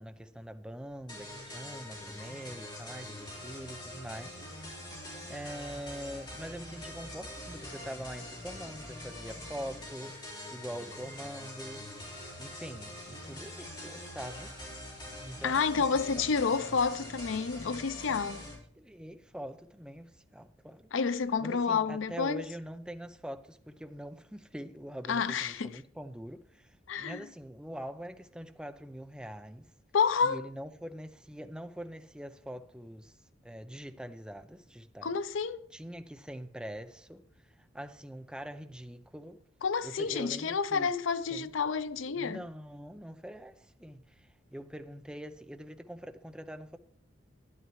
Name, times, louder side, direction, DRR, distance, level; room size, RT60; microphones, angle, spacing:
voice 1, 0.0-4.5 5.3-10.2 10.5-11.9 12.4-14.5 15.2-15.8 16.2-16.3 18.8-20.9 21.4-29.7 30.2-33.1 33.4-35.2 35.7-37.2 37.6-39.4 39.8-40.9 41.3-41.5 42.1-46.8, equal, 5° right, 0.6 m, -44 dB
sound 1, 1.1-18.5, left 1 dB, 25° left, 4.4 m, -44 dB
voice 2, 15.4-18.4 20.9-22.4 25.1-25.8 26.9-27.3 29.9-30.4 35.0-35.7 39.6-42.4, left 5 dB, 90° left, 0.5 m, -29 dB
12.5 x 10.5 x 3.2 m
head